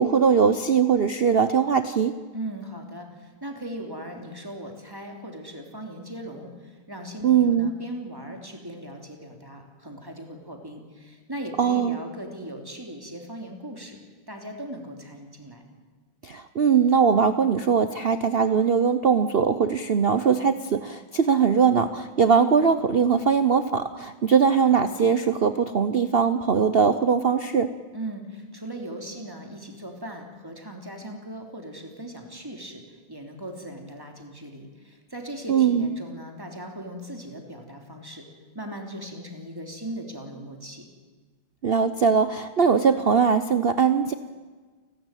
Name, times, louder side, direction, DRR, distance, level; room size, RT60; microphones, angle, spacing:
voice 1, 0.0-2.2 7.2-7.7 11.6-12.0 16.2-27.7 35.5-35.9 41.6-44.1, right 6 dB, 90° right, 11 dB, 0.5 m, -21 dB
voice 2, 2.3-14.0 14.3-15.6 27.9-38.2 38.5-40.8, right 1 dB, 10° right, 3 dB, 3.1 m, -38 dB
30.0 x 12.5 x 9.1 m, 1.4 s
omnidirectional pair, 2.2 m